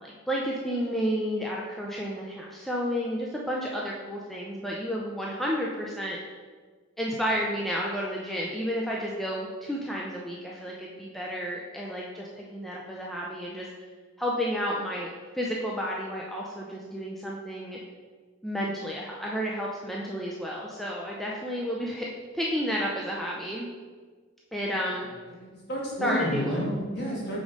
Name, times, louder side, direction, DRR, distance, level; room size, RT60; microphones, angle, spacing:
voice 1, 0.0-6.2 7.0-13.7 14.2-15.1 15.3-17.8 18.4-22.1 22.3-23.7 24.5-25.1 26.0-26.6, equal, ahead, -4 dB, 0.4 m, -31 dB
voice 2, 25.4-27.4, equal, 50° left, -5 dB, 1.8 m, -30 dB
5.2 x 3.7 x 5.1 m, 1.5 s
head